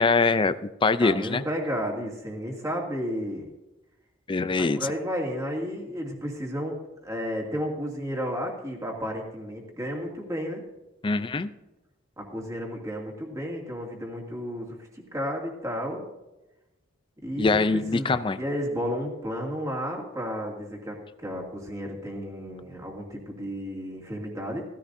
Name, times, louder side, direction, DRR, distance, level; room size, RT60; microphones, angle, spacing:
voice 1, 0.0-1.4 4.3-4.8 11.0-11.5 17.4-18.4, left 3 dB, 25° left, 12 dB, 0.4 m, -23 dB
voice 2, 1.0-3.5 4.6-6.8 7.0-10.6 12.2-14.7 15.1-16.0 17.2-24.7, equal, 15° right, -1 dB, 2.4 m, -32 dB
15.5 x 15.0 x 2.7 m, 1.0 s
head